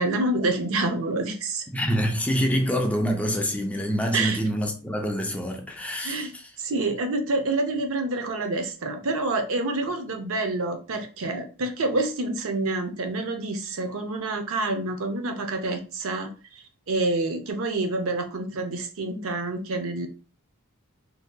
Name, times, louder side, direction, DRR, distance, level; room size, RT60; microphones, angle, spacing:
voice 1, 0.0-1.6 4.1-4.4 6.0-6.3 6.6-20.1, right 2 dB, 65° right, 0.6 m, -27 dB
voice 2, 1.7-6.5, equal, 5° left, 0.4 m, -26 dB
3.7 x 2.7 x 2.2 m
head